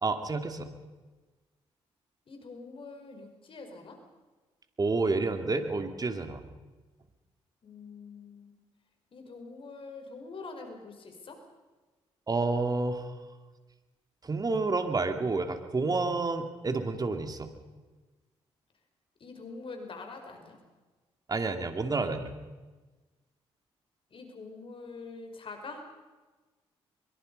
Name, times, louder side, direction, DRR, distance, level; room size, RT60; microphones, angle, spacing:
voice 1, 0.0-0.7 4.8-6.4 12.3-13.1 14.2-17.5 21.3-22.4, right 3 dB, 35° right, 7 dB, 2.7 m, -29 dB
voice 2, 2.3-4.0 7.6-8.5 9.1-11.4 19.2-20.6 24.1-25.9, left 3 dB, 50° left, 4 dB, 5.0 m, -44 dB
23.0 x 23.0 x 5.5 m, 1.2 s
supercardioid pair, 65°, 11 cm